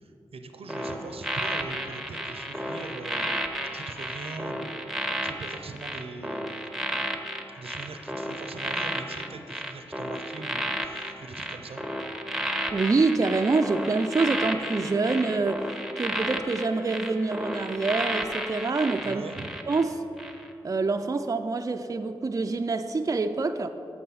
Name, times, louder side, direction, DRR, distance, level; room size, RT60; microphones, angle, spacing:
voice 1, 0.0-3.4 3.7-4.9 5.2-6.6 7.5-11.9 19.0-19.7, right 3 dB, 80° right, 0.6 m, -41 dB
sound 1, 0.7-19.8 20.2-20.5, equal, 5° right, 0.9 m, -32 dB
voice 2, 12.7-15.7 16.0-19.2 19.7-20.0 20.6-23.7, right 3 dB, 35° right, 0.4 m, -26 dB
8.4 x 7.3 x 4.0 m
cardioid pair, 40°, 10 cm